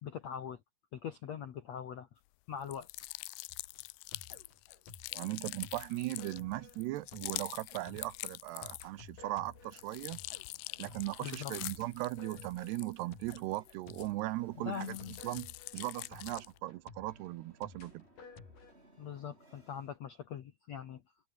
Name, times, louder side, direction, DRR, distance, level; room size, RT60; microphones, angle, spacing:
voice 1, 0.0-0.6 0.9-2.1 2.5-2.9 11.2-11.5 14.5-15.2 19.0-21.0, left 8 dB, 70° left, 1.6 m, -42 dB
sound 1, 2.6-9.1 9.5-14.4 14.7-16.6, left 23 dB, 85° left, 2.5 m, -45 dB
sound 2, 3.5-14.4 14.8-18.7, left 4 dB, 50° left, 7.0 m, -55 dB
voice 2, 5.1-10.2 10.8-15.0 15.2-18.0, right 17 dB, 80° right, 2.7 m, -38 dB
sound 3, 9.5-20.0, right 1 dB, 15° right, 6.5 m, -65 dB
omnidirectional pair, 5.1 m